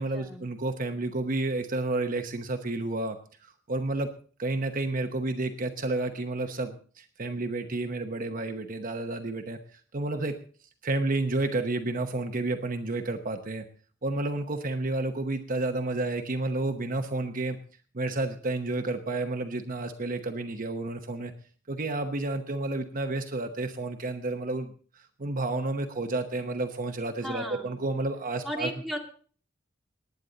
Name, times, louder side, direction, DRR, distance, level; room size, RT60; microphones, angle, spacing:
voice 1, 0.0-3.2 3.4-4.1 4.4-10.4 10.8-13.7 14.0-17.6 17.9-21.3 21.7-28.7, right 2 dB, 45° right, 6 dB, 0.9 m, -31 dB
voice 2, 27.2-27.8 28.4-29.0, equal, ahead, 0 dB, 2.3 m, -35 dB
19.0 x 9.8 x 3.9 m, 0.43 s
head